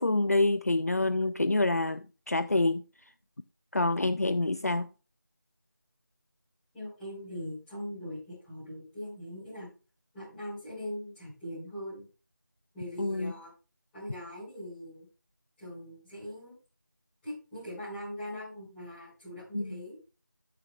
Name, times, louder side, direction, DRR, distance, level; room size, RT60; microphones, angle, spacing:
voice 1, 0.0-2.8 3.7-4.9 13.0-13.3 19.5-19.8, left 2 dB, 50° left, 0.4 m, -27 dB
voice 2, 6.7-9.7 10.1-12.0 12.7-13.5 13.9-15.0 15.6-16.6 17.2-20.0, equal, 5° left, 5.1 m, -41 dB
14.0 x 6.9 x 2.3 m
figure-of-eight pair, 175°, 11 cm